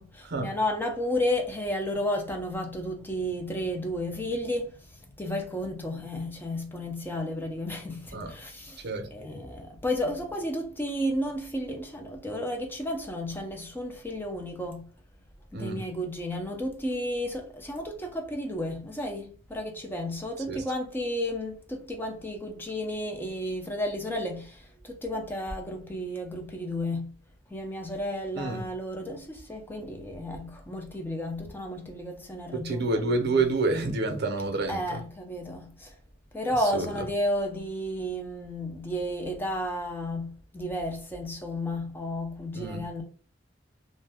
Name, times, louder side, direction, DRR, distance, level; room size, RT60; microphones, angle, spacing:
voice 1, 0.0-14.8 15.5-27.1 27.5-32.9 34.7-35.9 36.3-43.0, left 1 dB, 10° left, 0.5 m, -32 dB
voice 2, 32.5-34.8 36.7-36.9 42.5-42.8, right 3 dB, 60° right, 0.6 m, -28 dB
2.6 x 2.1 x 3.4 m
head